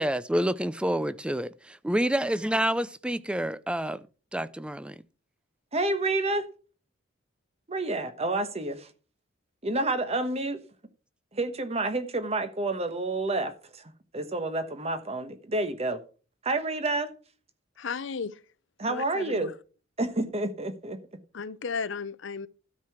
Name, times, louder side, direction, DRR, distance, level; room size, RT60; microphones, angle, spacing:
voice 1, 0.0-4.0 4.3-5.0, right 1 dB, 5° right, 0.4 m, -28 dB
voice 2, 5.7-6.5 7.7-8.9 9.6-10.6 11.3-16.0 16.4-17.1 18.8-19.5 20.0-21.0, right 2 dB, 35° right, 1.1 m, -29 dB
voice 3, 17.8-18.4 18.9-19.5 21.3-22.5, left 5 dB, 65° left, 0.6 m, -34 dB
12.5 x 4.8 x 6.0 m
head